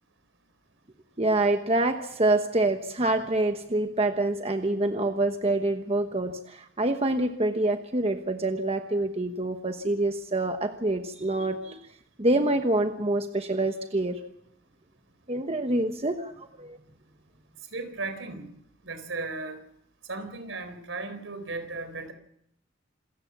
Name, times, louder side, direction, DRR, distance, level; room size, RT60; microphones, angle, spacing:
voice 1, 1.2-11.8 12.2-14.2 15.3-16.8, right 2 dB, 30° right, 6 dB, 1.1 m, -26 dB
voice 2, 17.7-18.5 18.8-19.6 20.1-22.1, right 3 dB, 75° right, 9 dB, 4.0 m, -35 dB
27.5 x 14.5 x 7.2 m, 0.75 s
head